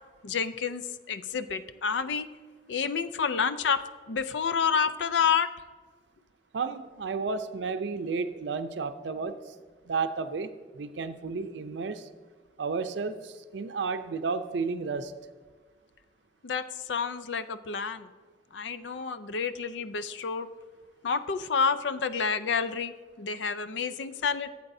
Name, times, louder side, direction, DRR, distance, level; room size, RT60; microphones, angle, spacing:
voice 1, 0.2-2.3 2.7-3.8 4.1-5.5 16.4-18.1 18.5-20.5 21.0-22.9 23.2-24.5, left 6 dB, 85° left, 12 dB, 0.5 m, -29 dB
voice 2, 6.5-9.5 9.9-12.1 12.6-15.1, right 4 dB, 80° right, 10 dB, 0.5 m, -32 dB
15.0 x 8.2 x 2.7 m, 1.5 s
head